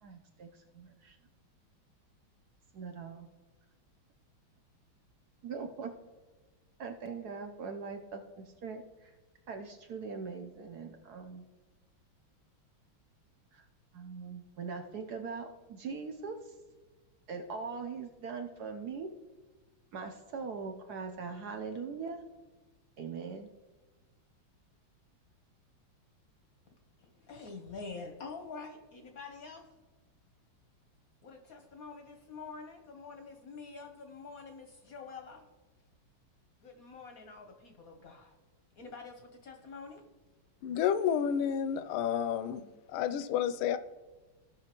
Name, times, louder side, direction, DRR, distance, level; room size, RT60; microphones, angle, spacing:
voice 1, 0.0-1.2 2.7-3.3 5.4-5.9 6.8-9.1 9.5-11.5 13.5-13.7 13.9-16.6 17.3-19.1 19.9-22.2 23.0-23.5, right 5 dB, 65° right, 4 dB, 1.0 m, -41 dB
voice 2, 27.0-29.6 31.2-35.5 36.6-38.3 38.8-40.0, left 4 dB, 60° left, 4 dB, 1.0 m, -47 dB
voice 3, 40.6-43.8, left 8 dB, 85° left, 13 dB, 1.4 m, -30 dB
16.5 x 5.8 x 2.9 m, 1.2 s
omnidirectional pair, 2.3 m